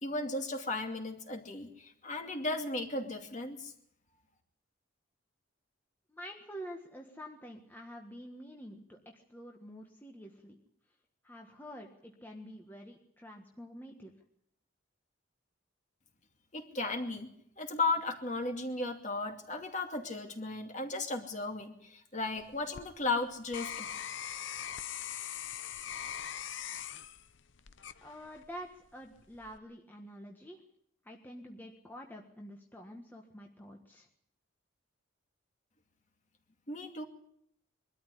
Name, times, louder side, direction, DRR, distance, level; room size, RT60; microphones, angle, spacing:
voice 1, 0.0-3.7 16.5-17.3 17.6-23.9 36.7-37.0, left 3 dB, 35° left, 4 dB, 2.6 m, -35 dB
voice 2, 6.1-10.6 11.2-14.1 28.0-30.6 31.0-34.1, equal, 10° left, 1 dB, 1.5 m, -48 dB
sound 1, 22.4-28.6 29.1-29.6, left 9 dB, 60° left, 0.8 m, -42 dB
22.5 x 13.0 x 10.0 m, 0.71 s
head